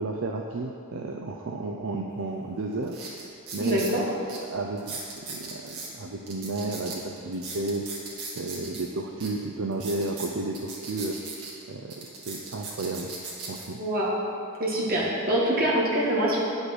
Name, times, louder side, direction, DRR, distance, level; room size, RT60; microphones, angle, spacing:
voice 1, 0.0-3.0 3.5-7.9 8.4-11.2 11.7-13.1 13.5-13.8, right 2 dB, 65° right, 1 dB, 0.6 m, -32 dB
sound 1, 2.2-2.3 2.8-3.9 4.3-4.4 4.8-5.9 6.3-8.8 9.2-9.3 9.7-11.5 11.9-13.7 14.3-14.6, right 4 dB, 80° right, 2.0 m, -38 dB
voice 2, 3.6-4.0 13.8-14.1 14.6-16.4, right 1 dB, 45° right, -5 dB, 2.1 m, -24 dB
10.0 x 5.3 x 6.3 m, 2.5 s
head